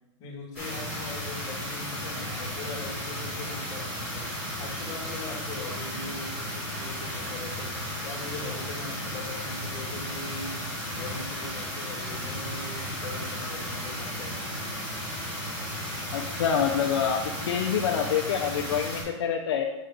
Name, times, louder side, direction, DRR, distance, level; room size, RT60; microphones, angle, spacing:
voice 1, 0.2-7.7 8.0-14.5, left 3 dB, 20° left, -3 dB, 1.4 m, -41 dB
sound 1, 0.5-19.0, equal, 10° right, 2.2 m, -34 dB
voice 2, 16.1-17.2 17.5-19.6, left 8 dB, 60° left, 2 dB, 0.6 m, -26 dB
6.4 x 5.6 x 3.8 m, 1.0 s
supercardioid pair, 180°, 16 cm